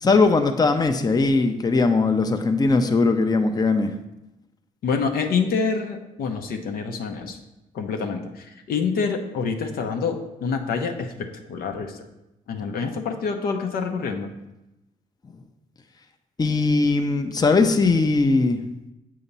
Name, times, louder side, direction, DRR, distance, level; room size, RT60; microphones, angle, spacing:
voice 1, 0.0-3.9 16.4-18.6, left 3 dB, 25° left, 6 dB, 0.6 m, -20 dB
voice 2, 4.8-7.4 7.7-11.1 11.5-12.1 12.5-14.3, left 5 dB, 75° left, 4 dB, 0.7 m, -27 dB
7.1 x 2.8 x 5.3 m, 0.94 s
supercardioid pair, 55°, 16 cm